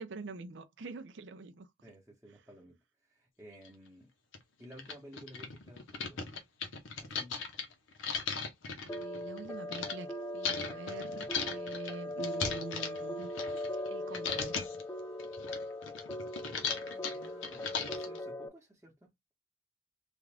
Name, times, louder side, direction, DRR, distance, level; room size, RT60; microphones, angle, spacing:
voice 1, 0.0-1.7 8.8-13.3 13.9-14.7, right 3 dB, 70° right, 0.5 m, -45 dB
voice 2, 1.8-4.1 4.6-6.2 7.0-7.4 16.5-19.1, equal, 10° right, 0.9 m, -54 dB
sound 1, 3.6-3.7 4.3-4.4 4.7-9.9 10.4-13.9 14.1-14.8 15.2-18.2, left 5 dB, 90° left, 0.9 m, -37 dB
sound 2, 8.9-18.5, left 1 dB, 10° left, 0.3 m, -40 dB
3.5 x 2.4 x 3.3 m
head